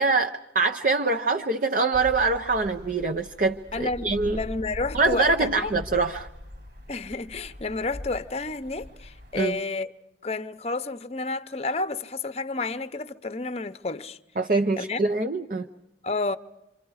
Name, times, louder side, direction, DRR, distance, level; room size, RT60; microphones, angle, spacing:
voice 1, 0.0-4.4 4.9-6.3 9.3-9.6 14.4-15.7, right 3 dB, 50° right, 0.7 m, -24 dB
sound 1, 1.9-9.4, left 1 dB, 70° right, 3.9 m, -41 dB
voice 2, 3.7-5.7 6.9-9.9 10.2-14.2 14.8-15.0 16.0-16.4, left 3 dB, 35° left, 0.8 m, -30 dB
28.0 x 26.0 x 4.8 m
head